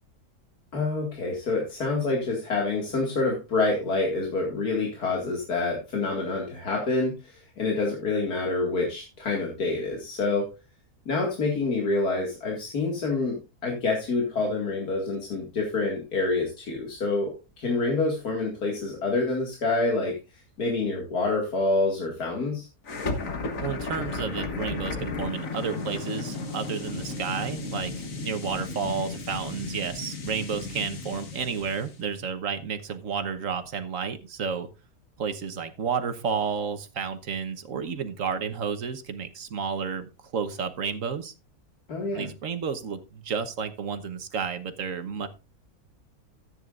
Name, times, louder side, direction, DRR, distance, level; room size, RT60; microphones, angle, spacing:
voice 1, 0.7-10.5 11.1-20.1 20.6-22.7 41.9-42.3, left 3 dB, 85° left, -1 dB, 2.7 m, -27 dB
sound 1, 22.8-32.0, left 3 dB, 60° left, 1.8 m, -34 dB
voice 2, 23.6-34.7 35.2-41.3 42.1-45.3, right 6 dB, 60° right, 9 dB, 1.5 m, -31 dB
14.0 x 9.3 x 2.5 m, 0.28 s
omnidirectional pair, 1.6 m